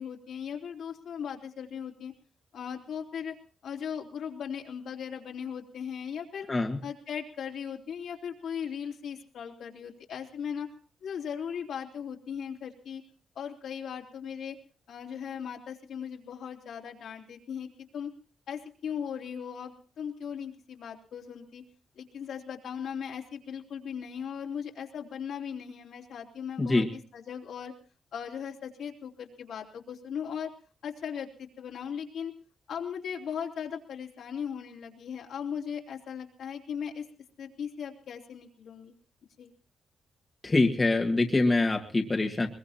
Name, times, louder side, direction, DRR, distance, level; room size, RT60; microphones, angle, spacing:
voice 1, 0.0-2.1 2.5-3.3 3.6-6.5 6.8-10.7 11.0-13.0 13.4-14.6 14.9-18.1 18.5-21.6 22.0-26.9 27.1-27.7 28.1-30.5 30.8-32.3 32.7-37.1 37.4-39.0 39.4-39.5, left 7 dB, 75° left, -1 dB, 3.5 m, -38 dB
voice 2, 6.5-6.8 26.6-26.9 40.4-42.5, left 2 dB, 25° left, 2 dB, 1.9 m, -24 dB
22.5 x 21.5 x 2.9 m, 0.40 s
cardioid pair, 115°, 0 cm